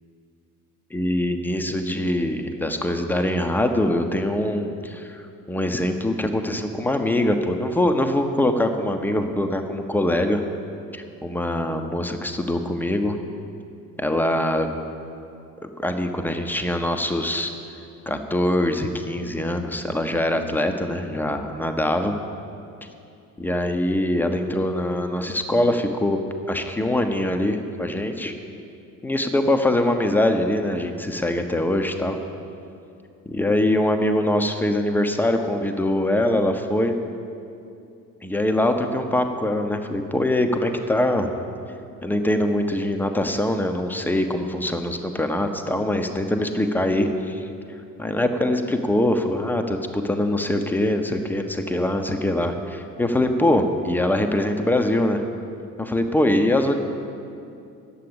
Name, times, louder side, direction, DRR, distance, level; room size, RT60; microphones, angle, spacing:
voice 1, 0.9-10.4 10.9-13.2 14.0-14.7 15.6-17.5 18.1-22.1 23.4-26.2 26.5-28.3 29.0-32.2 33.3-36.9 38.2-41.3 42.0-47.5 48.0-55.3 55.8-56.8, left 1 dB, 5° left, 6 dB, 0.7 m, -23 dB
9.9 x 7.5 x 6.8 m, 2.6 s
figure-of-eight pair, 60°, 48 cm